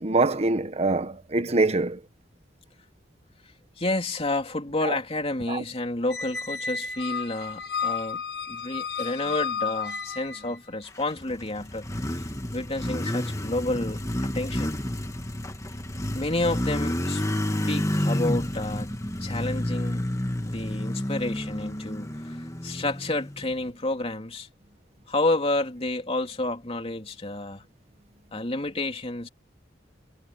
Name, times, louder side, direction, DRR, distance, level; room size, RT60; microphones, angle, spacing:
voice 1, 0.0-2.0 4.8-4.9 5.5-5.6, right 2 dB, 35° right, 1.3 m, -24 dB
voice 2, 3.8-8.2 8.5-11.8 12.5-14.8 16.1-17.2 17.7-20.0 20.5-22.1 22.6-24.5 25.1-27.6 28.3-29.3, left 2 dB, 35° left, 3.0 m, -30 dB
Squeak, 6.1-10.6, left 6 dB, 70° left, 7.0 m, -32 dB
Motorcycle, 11.0-23.7, left 1 dB, 15° left, 1.7 m, -30 dB
head